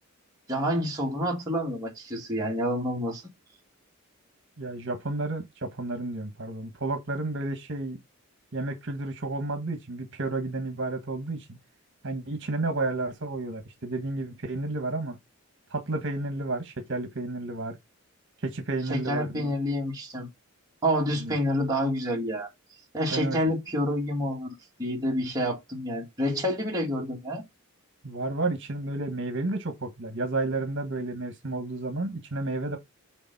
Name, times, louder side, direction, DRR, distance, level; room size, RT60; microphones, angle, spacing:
voice 1, 0.5-3.2 18.9-20.3 20.8-22.5 22.9-27.4, equal, 15° right, 2.2 m, -28 dB
voice 2, 4.6-8.0 8.5-11.6 12.0-15.2 15.7-17.8 18.4-19.6 21.1-21.3 23.1-23.5 28.0-32.8, right 2 dB, 55° right, 1.5 m, -31 dB
7.0 x 4.0 x 5.4 m
head